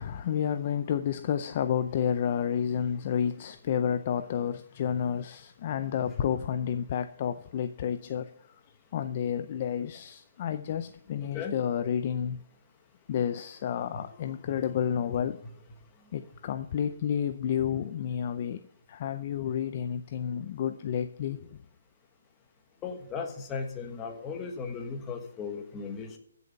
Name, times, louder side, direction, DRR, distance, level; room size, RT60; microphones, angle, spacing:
voice 1, 0.0-8.3 8.9-12.4 13.1-15.4 16.1-18.6 18.9-21.6, left 8 dB, 30° left, 0.5 m, -30 dB
voice 2, 11.2-11.6 22.8-26.2, left 5 dB, 10° left, 1.3 m, -36 dB
15.0 x 6.9 x 5.3 m
hypercardioid pair, 175°, 0 cm